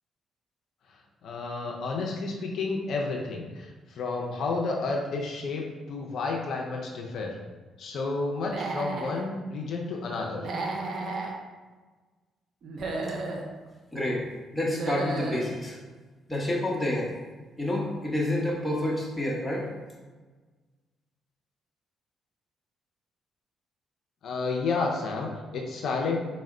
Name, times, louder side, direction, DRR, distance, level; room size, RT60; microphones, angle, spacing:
voice 1, 1.2-7.4 7.8-10.5 24.2-26.2, left 3 dB, 65° left, 0 dB, 0.5 m, -31 dB
Human voice / Animal, 8.4-9.2 10.4-11.3 12.6-13.5 14.6-15.5, right 3 dB, 60° right, 0.6 m, -33 dB
voice 2, 13.9-14.3 14.5-15.8 16.3-17.1 17.6-19.7, left 1 dB, 10° left, -3 dB, 1.0 m, -28 dB
4.1 x 2.1 x 3.7 m, 1.3 s
cardioid pair, 90°, 0 cm